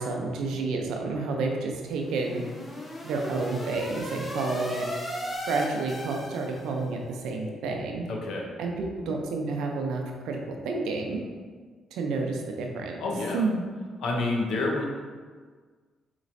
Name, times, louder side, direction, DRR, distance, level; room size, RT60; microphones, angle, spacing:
voice 1, 0.0-2.4 3.0-4.9 5.5-8.0 8.6-11.2 11.9-13.0 13.3-13.7, right 3 dB, 85° right, 2 dB, 0.5 m, -30 dB
sound 1, 1.9-6.9, equal, 20° left, 0.6 m, -37 dB
voice 2, 8.1-8.5 13.0-13.4 14.0-14.8, left 2 dB, 75° left, -1 dB, 0.6 m, -28 dB
4.1 x 3.0 x 2.6 m, 1.5 s
cardioid pair, 90°, 0 cm